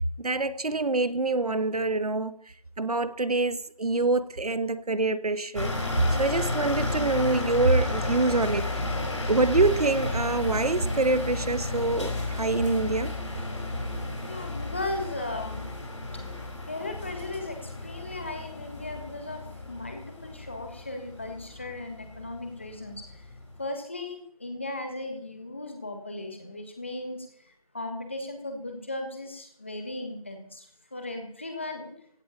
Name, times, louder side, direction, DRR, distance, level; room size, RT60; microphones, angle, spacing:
voice 1, 0.2-2.3 2.8-5.7 6.2-8.7 9.3-13.2, right 3 dB, 80° right, 1.0 m, -25 dB
sound 1, 5.5-23.6, left 2 dB, 55° left, 4.4 m, -33 dB
voice 2, 14.2-15.7 16.7-23.3 23.6-30.7 30.9-31.9, left 2 dB, 20° left, 1.6 m, -37 dB
16.0 x 6.5 x 8.6 m
figure-of-eight pair, 180°, 19 cm